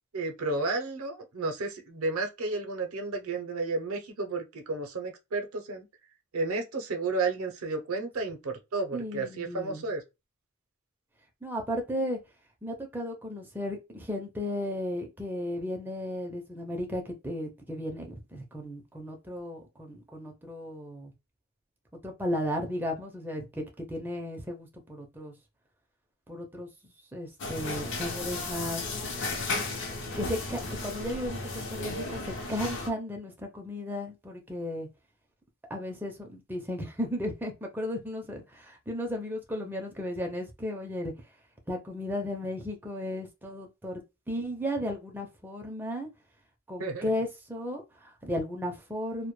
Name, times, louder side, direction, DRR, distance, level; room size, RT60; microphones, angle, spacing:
voice 1, 0.1-5.9 6.3-10.0 46.8-47.1, right 3 dB, 70° right, 0.6 m, -32 dB
voice 2, 8.9-9.9 11.4-12.2 12.6-21.1 22.0-25.3 26.3-26.7 27.1-28.8 30.1-32.2 32.5-34.9 35.7-41.1 41.7-44.0 44.3-46.1 46.7-49.3, left 1 dB, 10° right, 0.4 m, -35 dB
sound 1, 27.4-32.9, left 3 dB, 55° left, 0.6 m, -34 dB
2.1 x 2.1 x 3.0 m
head